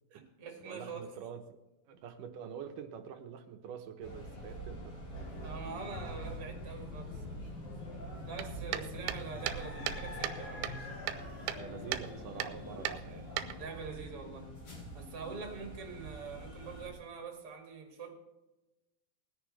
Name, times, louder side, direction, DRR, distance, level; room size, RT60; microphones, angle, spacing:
voice 1, 0.1-1.0 5.4-7.2 8.2-10.9 13.6-14.6 14.9-18.1, right 5 dB, 40° right, 2 dB, 2.6 m, -44 dB
voice 2, 0.6-1.6 1.9-5.0 8.7-9.0 11.6-13.3, right 7 dB, 70° right, 5 dB, 2.3 m, -46 dB
sound 1, 4.0-16.9, equal, 45° left, 4.2 m, -45 dB
sound 2, 5.1-13.8, left 2 dB, 75° left, 6.7 m, -49 dB
sound 3, 8.4-10.4 10.6-11.6 11.9-12.1 12.4-12.5 12.9-13.9, right 12 dB, 85° right, 2.7 m, -37 dB
20.0 x 10.0 x 3.3 m, 1.0 s
omnidirectional pair, 4.5 m